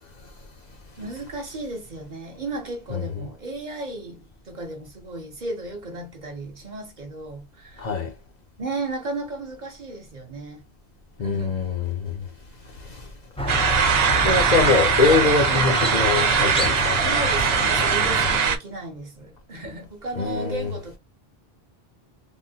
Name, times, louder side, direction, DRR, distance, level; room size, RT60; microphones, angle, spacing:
voice 1, 1.0-7.9 8.6-10.6 11.2-11.6 15.1-15.7 16.2-16.7 17.0-21.0, right 2 dB, 50° right, 0.9 m, -35 dB
voice 2, 7.8-8.1 11.2-12.3 12.9-13.0 14.2-17.0 20.2-20.7, left 4 dB, 50° left, 0.7 m, -23 dB
Squeak, 13.4-18.4, left 1 dB, 10° left, 0.3 m, -27 dB
sound 1, 13.5-18.6, right 6 dB, 75° right, 0.9 m, -21 dB
3.5 x 2.1 x 2.7 m
omnidirectional pair, 1.0 m